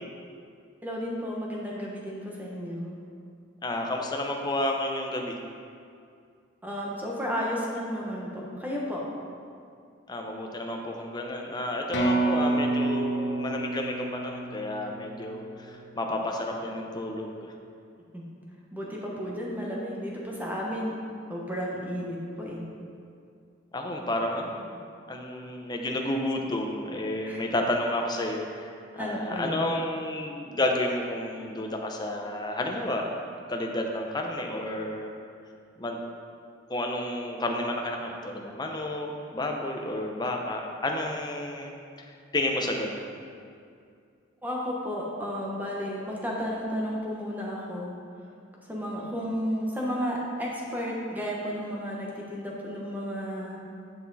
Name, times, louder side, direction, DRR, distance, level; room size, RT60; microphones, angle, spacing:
voice 1, 0.8-2.9 6.6-9.0 18.1-18.2 18.7-20.9 21.3-22.6 27.2-27.4 29.0-29.7 44.4-48.0 48.7-53.6, equal, 10° right, -4 dB, 1.3 m, -33 dB
voice 2, 3.6-5.3 10.1-17.5 23.7-24.8 25.1-33.1 33.5-35.1 35.8-36.0 36.7-41.7 42.0-43.1, left 1 dB, 20° left, 1 dB, 0.8 m, -31 dB
sound 1, 11.9-15.7, right 2 dB, 60° left, 1.0 m, -28 dB
9.8 x 6.0 x 4.1 m, 2.3 s
head